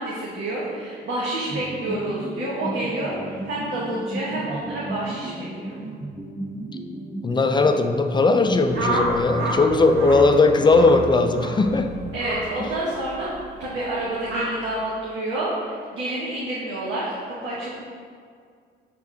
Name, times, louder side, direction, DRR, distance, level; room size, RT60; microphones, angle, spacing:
voice 1, 0.0-5.8 12.1-13.3 13.6-17.7, right 1 dB, 75° right, -7 dB, 1.1 m, -28 dB
sound 1, 1.5-8.2, right 2 dB, 25° right, 1.4 m, -34 dB
voice 2, 7.2-11.9, left 3 dB, 25° left, 7 dB, 0.4 m, -18 dB
sound 2, 8.4-15.0, left 4 dB, 65° left, 0.6 m, -39 dB
sound 3, 8.7-9.6 9.9-10.2 10.6-10.9 11.3-11.6 12.2-12.4 13.1-13.4 14.2-14.5, right 1 dB, 55° right, 1.2 m, -28 dB
4.8 x 3.8 x 5.3 m, 2.1 s
cardioid pair, 90°, 20 cm